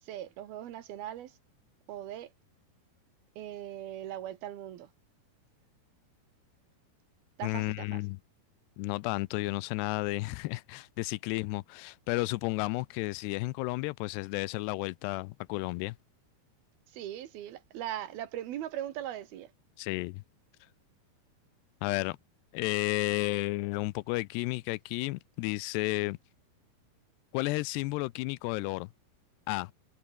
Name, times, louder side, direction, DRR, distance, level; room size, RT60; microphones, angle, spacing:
voice 1, 0.0-1.4 1.9-2.3 3.4-4.9 7.4-8.0 16.9-19.5, right 12 dB, 70° right, 3.3 m, -39 dB
voice 2, 7.4-8.2 8.8-16.0 19.8-20.2 21.8-22.2 22.5-26.2 27.3-28.9 29.5-29.7, left 22 dB, 90° left, 2.7 m, -32 dB
omnidirectional pair, 4.7 m